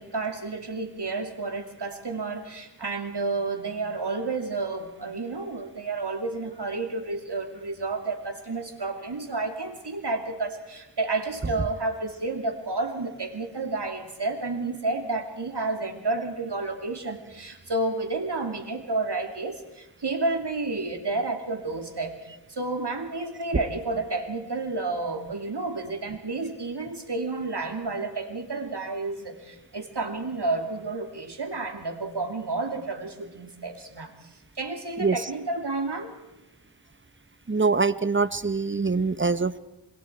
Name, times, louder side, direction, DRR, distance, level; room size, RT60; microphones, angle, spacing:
voice 1, 0.0-34.1 34.6-36.1, right 3 dB, 70° right, 5 dB, 2.8 m, -31 dB
voice 2, 37.5-39.6, right 4 dB, 30° right, 15 dB, 0.9 m, -24 dB
26.0 x 22.5 x 4.5 m, 1.0 s
wide cardioid pair, 40°, 42 cm